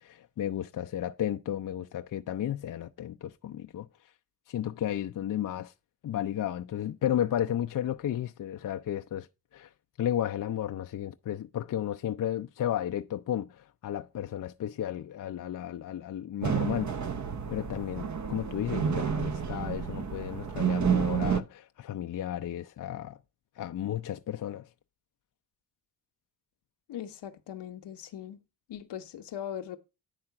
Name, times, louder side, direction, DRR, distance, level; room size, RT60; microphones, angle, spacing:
voice 1, 0.0-3.9 4.5-5.7 6.0-9.3 9.5-9.7 10.0-17.0 17.5-23.2 23.6-24.7, left 11 dB, 50° left, 0.5 m, -33 dB
sound 1, 16.4-21.4, right 7 dB, 45° right, 0.8 m, -30 dB
voice 2, 26.9-28.4 28.7-29.8, left 10 dB, 75° left, 0.9 m, -40 dB
9.8 x 3.6 x 5.8 m
supercardioid pair, 55°, 42 cm